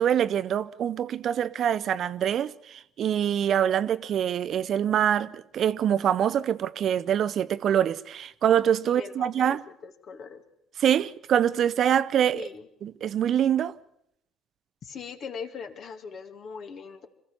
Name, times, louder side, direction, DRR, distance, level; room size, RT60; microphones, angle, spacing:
voice 1, 0.0-9.6 10.8-12.5 12.8-13.7, right 9 dB, 50° right, 0.7 m, -25 dB
voice 2, 8.9-9.6 9.8-10.4 12.3-12.7 14.8-17.1, left 5 dB, 50° left, 2.2 m, -40 dB
26.5 x 15.0 x 7.0 m
figure-of-eight pair, 50°, 0 cm